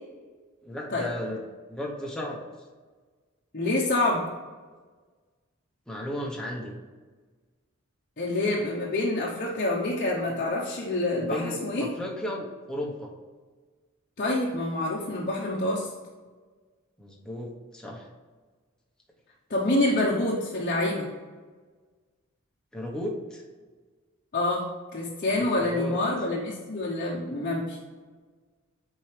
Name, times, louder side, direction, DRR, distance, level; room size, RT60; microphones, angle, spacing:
voice 1, 0.6-1.4 1.7-2.4 5.9-6.8 11.2-13.1 17.0-18.1 22.7-23.4 25.6-26.0, left 1 dB, 5° left, -2 dB, 1.1 m, -34 dB
voice 2, 3.5-4.3 8.2-11.9 14.2-15.9 19.5-21.1 24.3-27.8, left 2 dB, 40° left, -5 dB, 0.9 m, -27 dB
7.7 x 4.6 x 3.4 m, 1.4 s
head